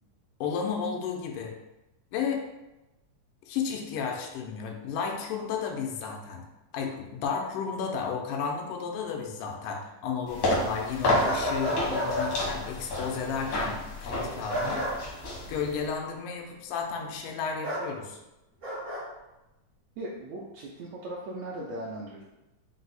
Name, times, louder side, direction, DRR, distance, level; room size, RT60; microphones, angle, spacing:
voice 1, 0.4-1.5 2.1-2.5 3.5-6.4 6.7-14.9 15.5-18.2, left 6 dB, 90° left, 2 dB, 2.2 m, -33 dB
sound 1, 10.3-15.9, left 1 dB, 70° left, 1.1 m, -30 dB
sound 2, 11.2-12.3 14.5-14.9 17.6-17.8 18.6-19.0, equal, 65° right, 0.7 m, -30 dB
voice 2, 20.0-22.2, right 1 dB, 85° right, -3 dB, 1.6 m, -38 dB
5.3 x 2.0 x 3.9 m, 0.96 s
omnidirectional pair, 3.7 m